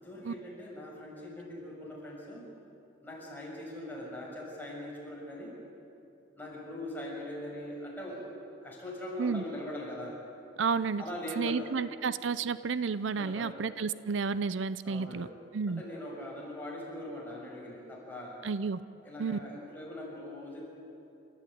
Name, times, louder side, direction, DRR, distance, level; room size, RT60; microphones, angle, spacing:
voice 1, 0.0-2.5 3.0-5.6 6.4-8.3 8.6-10.2 11.0-11.7 13.1-13.6 14.8-15.3 15.7-18.4 19.0-20.7, left 1 dB, 10° left, -4 dB, 7.0 m, -41 dB
voice 2, 10.6-11.0 11.4-15.3 15.5-15.8 18.4-18.8 19.2-19.4, right 5 dB, 80° right, 15 dB, 0.5 m, -31 dB
29.0 x 14.0 x 9.3 m, 2.7 s
head